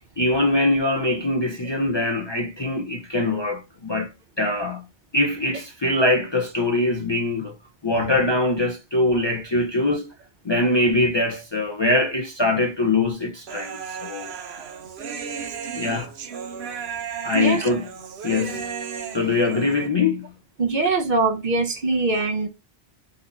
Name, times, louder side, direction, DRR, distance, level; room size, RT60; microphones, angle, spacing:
voice 1, 0.2-4.1 4.4-4.8 5.1-7.6 7.8-10.1 10.4-14.3 15.8-16.1 17.2-17.9 18.2-18.7 19.1-20.3, left 2 dB, 35° left, 0.5 m, -23 dB
Human voice, 13.5-19.9, right 6 dB, 75° right, 1.0 m, -34 dB
voice 2, 20.6-22.5, right 3 dB, 50° right, 0.8 m, -22 dB
4.1 x 2.8 x 3.8 m
omnidirectional pair, 1.1 m